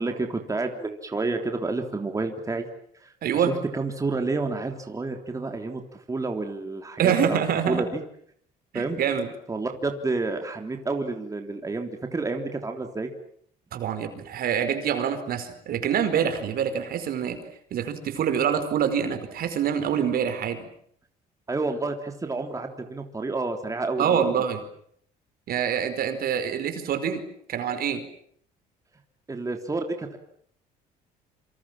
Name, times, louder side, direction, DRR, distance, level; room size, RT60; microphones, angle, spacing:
voice 1, 0.0-2.7 2.9-7.4 7.7-8.0 8.7-9.0 9.5-13.1 21.5-24.4 29.3-30.2, right 3 dB, 20° right, 4 dB, 3.5 m, -30 dB
voice 2, 7.0-7.8 8.7-9.3 13.7-17.4 17.7-20.7 24.0-24.6 25.5-27.2 27.5-28.0, right 8 dB, 60° right, 9 dB, 4.9 m, -25 dB
27.5 x 26.5 x 7.5 m, 0.66 s
cardioid pair, 110°, 17 cm